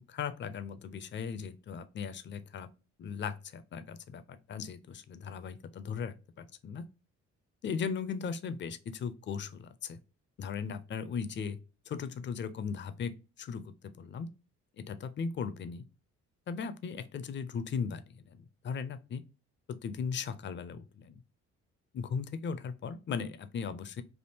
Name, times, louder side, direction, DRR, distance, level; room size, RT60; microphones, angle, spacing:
voice 1, 0.1-2.7 3.0-6.9 7.6-10.0 10.4-11.6 11.9-14.3 14.8-15.8 16.5-19.2 19.7-21.2 21.9-24.0, left 6 dB, 40° left, 0.5 m, -38 dB
3.5 x 2.4 x 2.7 m
cardioid pair, 90°, 30 cm